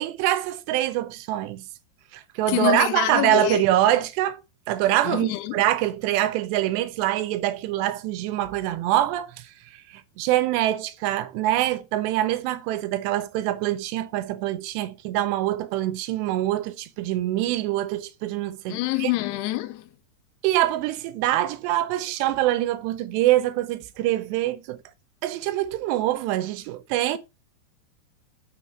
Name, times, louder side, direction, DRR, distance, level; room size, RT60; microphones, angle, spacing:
voice 1, 0.0-1.7 2.1-4.4 4.7-19.1 20.4-24.8 25.2-27.2, right 14 dB, 80° right, 2.9 m, -24 dB
voice 2, 2.5-3.6 5.0-5.6 18.7-19.9, left 16 dB, 80° left, 2.5 m, -26 dB
7.9 x 6.1 x 4.4 m
omnidirectional pair, 5.0 m